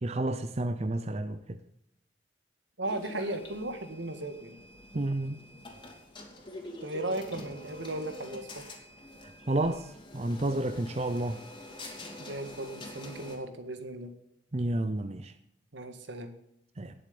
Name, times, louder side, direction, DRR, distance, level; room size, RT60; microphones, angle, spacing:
voice 1, 0.0-1.6 4.9-5.4 9.5-11.4 14.5-15.3 16.8-16.9, right 1 dB, 35° right, 0.7 m, -31 dB
sound 1, 2.8-13.4, left 1 dB, 25° left, 2.7 m, -46 dB
voice 2, 2.8-4.6 6.8-8.7 12.2-14.1 15.7-16.3, right 1 dB, 80° right, 1.8 m, -36 dB
18.5 x 7.4 x 5.3 m
head